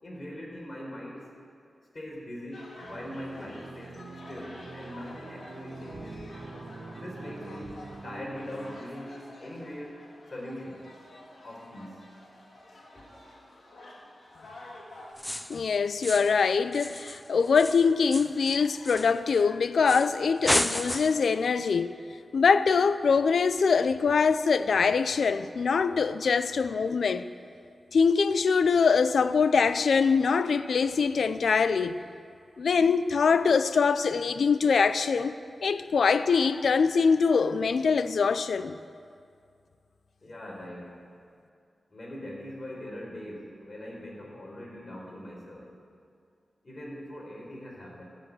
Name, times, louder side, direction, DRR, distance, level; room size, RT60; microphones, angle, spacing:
voice 1, 0.0-1.3 1.9-4.0 4.3-6.2 6.9-7.7 8.0-10.0 10.3-10.9 11.4-12.1 40.2-40.9 41.9-45.7 46.6-48.0, left 1 dB, 45° left, 4.4 m, -41 dB
sound 1, 2.5-15.1, left 1 dB, 65° left, 3.3 m, -49 dB
sound 2, 2.8-8.8, right 3 dB, 80° right, 1.6 m, -44 dB
sound 3, 15.2-15.6 16.0-16.4 16.7-19.4 19.9-20.1 20.4-21.3, left 1 dB, 10° left, 0.5 m, -32 dB
voice 2, 15.5-21.9 22.3-27.3 27.9-32.0 32.6-35.3 35.6-38.8, left 5 dB, 80° left, 0.5 m, -23 dB
13.5 x 7.7 x 9.6 m
cardioid pair, 55°, 0 cm